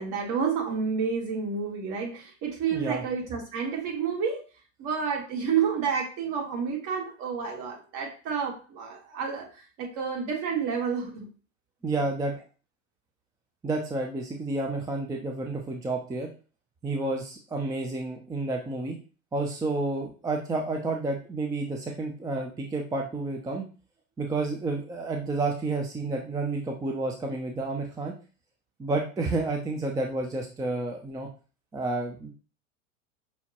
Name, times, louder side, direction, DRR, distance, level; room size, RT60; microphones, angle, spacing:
voice 1, 0.0-4.5 4.8-11.3 12.0-12.1, right 6 dB, 50° right, 0 dB, 1.5 m, -30 dB
voice 2, 2.7-3.0 11.8-12.3 13.6-16.3 16.8-19.0 19.3-23.6 24.2-28.1 28.8-31.3 31.7-32.3, right 2 dB, 10° right, 2 dB, 0.4 m, -30 dB
5.5 x 2.1 x 2.9 m, 0.35 s
hypercardioid pair, 85°, 41 cm